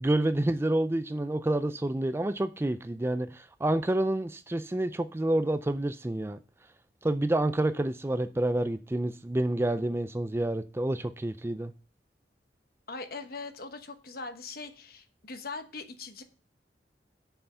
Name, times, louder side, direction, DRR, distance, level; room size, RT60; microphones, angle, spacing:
voice 1, 0.0-6.4 7.0-11.7, right 1 dB, 15° right, 0.4 m, -28 dB
voice 2, 12.9-16.2, left 3 dB, 55° left, 1.1 m, -41 dB
6.9 x 5.7 x 6.8 m
head